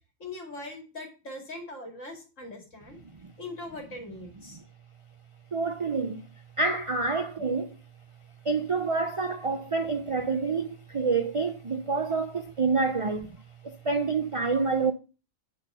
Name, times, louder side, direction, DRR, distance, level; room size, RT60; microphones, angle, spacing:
voice 1, 0.2-3.0 3.4-4.6 12.9-13.1, left 2 dB, 65° left, 2.7 m, -41 dB
voice 2, 5.5-6.2 6.6-7.8 8.5-13.3 13.8-14.9, right 4 dB, 55° right, 0.3 m, -27 dB
9.2 x 4.3 x 5.4 m
omnidirectional pair, 1.4 m